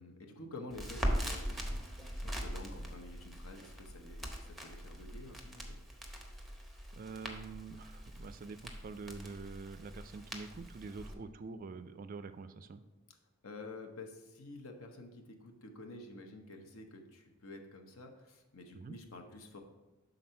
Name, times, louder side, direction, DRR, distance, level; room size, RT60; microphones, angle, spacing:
voice 1, 0.0-5.8 13.4-19.6, left 2 dB, 70° left, 4 dB, 0.8 m, -50 dB
Crackle, 0.7-11.1, equal, ahead, 0.7 m, -41 dB
voice 2, 6.9-12.8 18.7-19.0, right 4 dB, 40° right, 11 dB, 0.3 m, -46 dB
6.0 x 3.9 x 5.5 m, 1.1 s
head